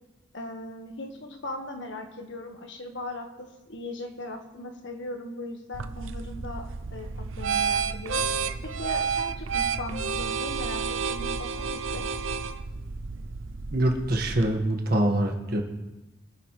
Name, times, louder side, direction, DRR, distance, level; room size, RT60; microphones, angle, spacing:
voice 1, 0.3-8.2 8.6-12.1, left 1 dB, 65° left, 4 dB, 1.6 m, -38 dB
sound 1, 5.7-14.6, right 5 dB, 80° right, 0.7 m, -31 dB
voice 2, 13.7-15.6, right 1 dB, 50° right, 2 dB, 1.8 m, -24 dB
23.5 x 10.5 x 3.3 m, 1.0 s
head